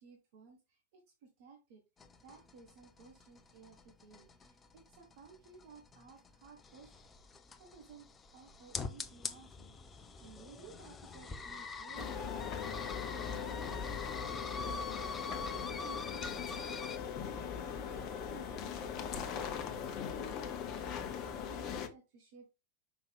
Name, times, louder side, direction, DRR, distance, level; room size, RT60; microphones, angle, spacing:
voice 1, 0.0-1.8 2.2-6.9 7.6-20.5 21.2-22.5, right 5 dB, 50° right, 3 dB, 1.5 m, -57 dB
sound 1, 2.0-17.0, left 4 dB, 20° left, 0.8 m, -45 dB
sound 2, 12.0-21.9, left 7 dB, 35° left, 1.1 m, -40 dB
6.0 x 5.5 x 3.6 m, 0.26 s
figure-of-eight pair, 90°, 0 cm